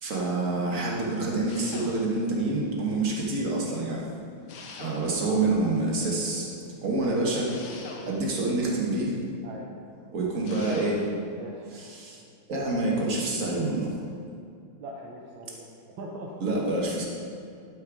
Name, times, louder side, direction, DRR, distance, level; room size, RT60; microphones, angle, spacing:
voice 1, 0.0-4.0 4.8-7.5 8.0-9.1 10.1-11.0 11.7-12.2 12.5-14.0 16.4-17.1, right 2 dB, 40° right, -3 dB, 1.9 m, -27 dB
sound 1, 1.5-2.4 4.5-5.4 7.5-8.5 10.4-11.2, left 3 dB, 80° left, 1.8 m, -43 dB
voice 2, 11.4-11.7 14.8-15.7 16.0-16.3, right 1 dB, 70° right, -2 dB, 1.5 m, -41 dB
11.5 x 5.6 x 4.9 m, 2.3 s
omnidirectional pair, 2.2 m